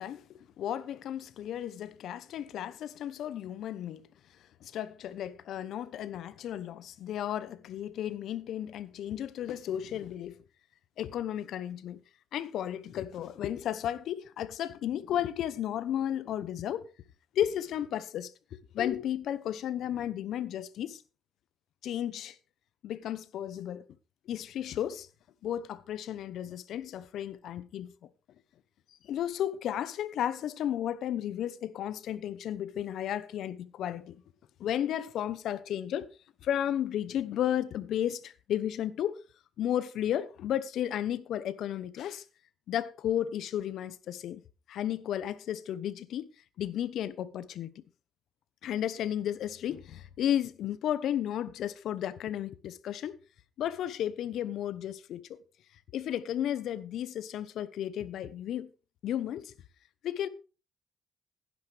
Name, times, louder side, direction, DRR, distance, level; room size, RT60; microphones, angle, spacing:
voice 1, 0.0-4.1 4.6-10.4 11.0-12.0 12.3-16.9 17.3-18.3 18.7-21.0 21.8-22.4 22.8-23.8 24.3-25.1 25.4-27.9 29.0-34.2 34.6-36.1 36.4-39.2 39.6-42.2 42.7-44.4 44.7-46.3 46.6-47.8 48.6-53.2 53.6-55.2 55.9-58.7 59.0-59.5 60.0-60.3, left 10 dB, 75° left, 0.9 m, -33 dB
15.5 x 10.5 x 3.5 m
cardioid pair, 90°, 0 cm